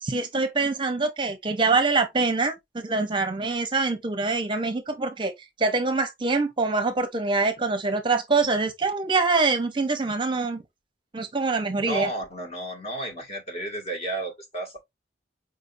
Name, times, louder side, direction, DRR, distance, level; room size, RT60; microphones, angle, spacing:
voice 1, 0.0-5.3 5.6-10.6 11.1-12.1, right 3 dB, 30° right, 0.7 m, -24 dB
voice 2, 11.8-14.8, right 1 dB, 35° left, 1.4 m, -32 dB
4.9 x 2.6 x 2.6 m
head